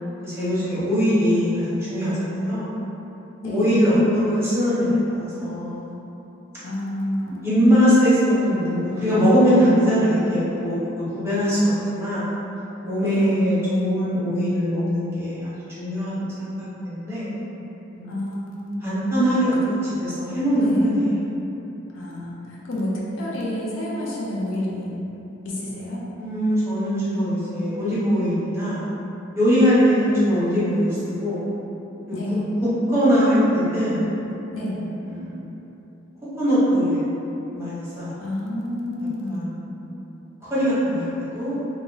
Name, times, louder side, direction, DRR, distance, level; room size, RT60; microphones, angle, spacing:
voice 1, 0.2-2.7 3.4-5.9 7.2-12.3 12.8-15.5 15.8-17.3 17.9-18.2 18.8-21.1 26.2-28.9 29.3-31.5 32.1-32.4 32.9-34.1 35.1-35.5 36.4-37.1 37.5-38.2 39.3-39.9 40.5-41.6, equal, 15° right, -12 dB, 0.9 m, -21 dB
voice 2, 3.4-3.8 6.6-7.5 13.1-13.3 18.0-18.9 20.6-20.9 21.9-24.9 25.4-26.0 32.1-32.4 34.5-34.8 38.2-39.5, left 1 dB, 90° left, -5 dB, 0.5 m, -29 dB
2.5 x 2.0 x 3.8 m, 3.0 s
head